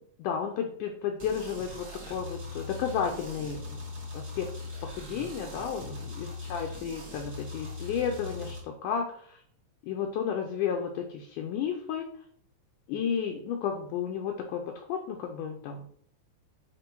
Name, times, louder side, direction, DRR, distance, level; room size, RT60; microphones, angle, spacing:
voice 1, 0.2-3.8 4.1-4.5 4.8-9.4 9.8-12.1 12.9-15.9, left 7 dB, 75° left, 3 dB, 2.0 m, -32 dB
sound 1, 1.2-8.6, left 2 dB, 35° right, 1.8 m, -40 dB
8.9 x 3.5 x 4.5 m, 0.62 s
omnidirectional pair, 4.1 m